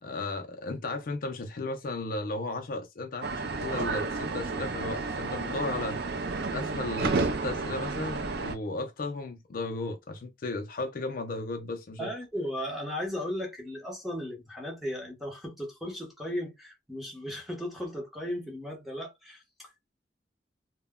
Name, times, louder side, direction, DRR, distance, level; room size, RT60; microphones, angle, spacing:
voice 1, 0.0-6.0 6.5-12.1, left 2 dB, 50° left, 0.4 m, -35 dB
sound 1, 3.2-8.6, right 3 dB, 60° right, 0.4 m, -31 dB
voice 2, 12.0-19.9, equal, ahead, 0.8 m, -36 dB
2.1 x 2.0 x 3.5 m
head